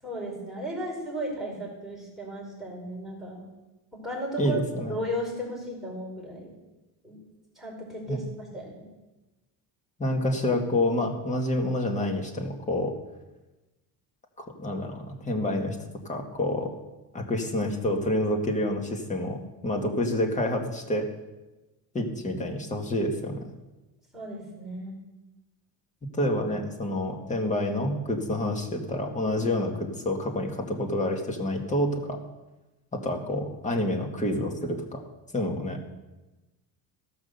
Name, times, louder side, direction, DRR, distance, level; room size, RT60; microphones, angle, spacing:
voice 1, 0.0-3.4 4.0-4.6 4.9-6.5 7.0-7.2 7.5-8.9 24.1-25.0, equal, ahead, -3 dB, 5.0 m, -35 dB
voice 2, 4.4-4.9 8.1-8.2 10.0-13.0 14.4-15.8 16.0-16.7 17.1-19.4 19.6-21.1 21.9-23.4 26.2-32.2 32.9-35.0 35.3-35.8, left 1 dB, 15° left, 2 dB, 1.7 m, -28 dB
15.0 x 6.1 x 6.8 m, 1.1 s
cardioid pair, 140°, 42 cm